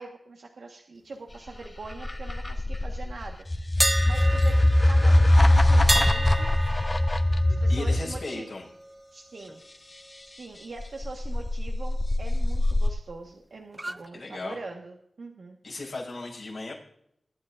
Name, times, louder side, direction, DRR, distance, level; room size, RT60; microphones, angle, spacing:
voice 1, 0.0-3.5 4.0-6.5 7.6-8.5 9.1-9.6 10.4-15.6, right 3 dB, 80° right, 1 dB, 1.4 m, -42 dB
sound 1, 1.5-8.2 10.8-12.9, left 1 dB, 35° left, 1.2 m, -22 dB
sound 2, 3.8-9.7 10.0-10.2 13.7-14.1, right 1 dB, 20° right, 0.6 m, -32 dB
voice 2, 7.7-8.7 14.1-14.6 15.6-16.7, left 3 dB, 70° left, -3 dB, 6.1 m, -36 dB
23.0 x 10.5 x 2.5 m, 0.72 s
cardioid pair, 50°, 0 cm